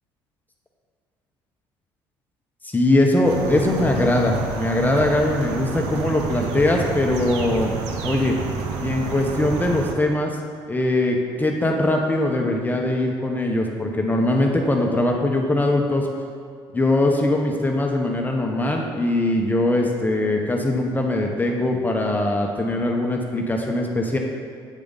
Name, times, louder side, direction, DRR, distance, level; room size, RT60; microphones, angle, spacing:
voice 1, 2.6-7.8 8.0-8.4 8.8-10.4 10.7-16.1 16.7-24.2, left 1 dB, 15° left, 1 dB, 1.1 m, -21 dB
sound 1, 3.2-10.0, right 4 dB, 85° right, 0.8 m, -29 dB
8.5 x 7.0 x 4.1 m, 2.1 s
supercardioid pair, 75°, 11 cm